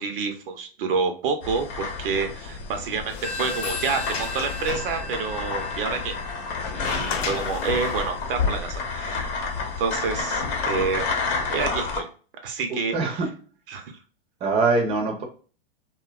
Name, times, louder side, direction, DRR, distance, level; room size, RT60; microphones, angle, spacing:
voice 1, 0.0-6.1 6.7-9.3 9.8-11.1 11.5-12.1 12.4-13.3 13.7-13.9, right 5 dB, 65° right, 5 dB, 0.6 m, -28 dB
sound 1, 1.4-12.0, left 4 dB, 55° left, 0.8 m, -30 dB
Sliding door, 2.8-8.3, left 5 dB, 90° left, 0.7 m, -36 dB
Telephone, 3.2-8.5, left 3 dB, 25° left, 0.6 m, -37 dB
voice 2, 12.9-13.3 14.4-15.2, right 3 dB, 20° right, 2 dB, 0.6 m, -22 dB
2.6 x 2.2 x 2.3 m, 0.39 s
hypercardioid pair, 120°, 30 cm